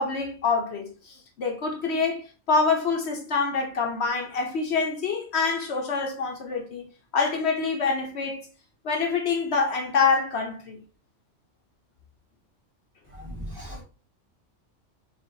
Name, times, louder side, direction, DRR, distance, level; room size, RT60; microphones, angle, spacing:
voice 1, 0.0-6.8 7.1-8.5 8.8-10.8, left 4 dB, 60° left, 0.9 m, -26 dB
voice 2, 13.1-13.8, equal, 25° right, 0.9 m, -37 dB
5.0 x 2.5 x 2.6 m
omnidirectional pair, 1.3 m